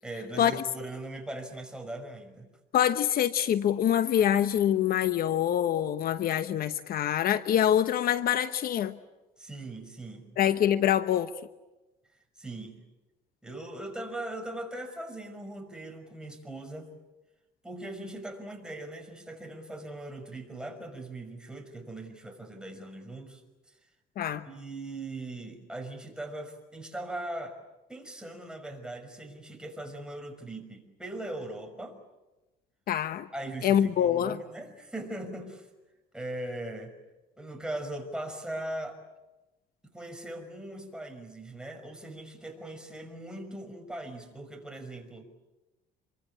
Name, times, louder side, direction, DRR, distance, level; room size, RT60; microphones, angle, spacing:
voice 1, 0.0-2.5 9.4-10.3 12.4-12.8 13.4-16.9 17.6-23.4 24.4-27.6 27.9-32.0 33.3-35.7 36.1-36.9 37.4-39.0 39.8-45.2, right 1 dB, 5° right, 4 dB, 5.7 m, -40 dB
voice 2, 2.7-9.0 10.4-11.3 24.2-24.5 32.9-33.3 33.6-34.4, left 10 dB, 60° left, 11 dB, 1.1 m, -25 dB
27.5 x 24.0 x 8.7 m, 1.1 s
cardioid pair, 110°, 17 cm